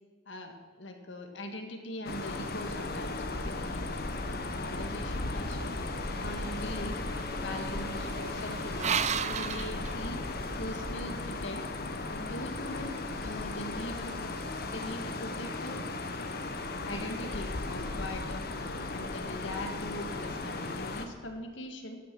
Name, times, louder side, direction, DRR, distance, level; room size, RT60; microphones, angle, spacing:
voice 1, 0.3-5.7 6.2-7.0 7.4-10.2 10.6-11.6 12.1-14.4 14.6-15.8 16.8-18.4 18.9-22.0, left 1 dB, 75° left, 4 dB, 1.8 m, -41 dB
sound 1, 2.1-21.1, left 2 dB, 55° left, 1.2 m, -36 dB
sound 2, 6.2-10.6, right 8 dB, 40° right, 0.5 m, -36 dB
15.5 x 9.4 x 6.1 m, 1.4 s
head